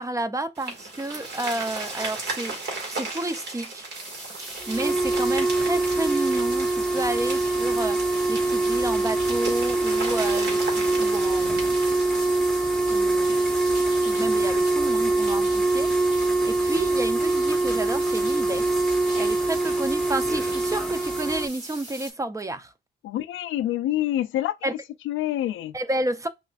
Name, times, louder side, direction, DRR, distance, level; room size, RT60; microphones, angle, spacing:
voice 1, 0.0-2.6 2.9-3.9 4.7-11.8 12.9-13.5 14.0-18.9 19.1-22.7 24.6-24.7 25.7-26.3, right 2 dB, 15° right, 0.5 m, -31 dB
sound 1, 0.6-12.0, right 3 dB, 60° right, 1.9 m, -36 dB
sound 2, 3.9-22.1, right 1 dB, 40° right, 2.2 m, -40 dB
sound 3, 4.6-21.5, right 2 dB, 5° left, 0.9 m, -24 dB
voice 2, 23.0-24.8 25.1-25.7, left 13 dB, 80° left, 0.4 m, -27 dB
5.7 x 2.5 x 2.4 m
cardioid pair, 90°, 20 cm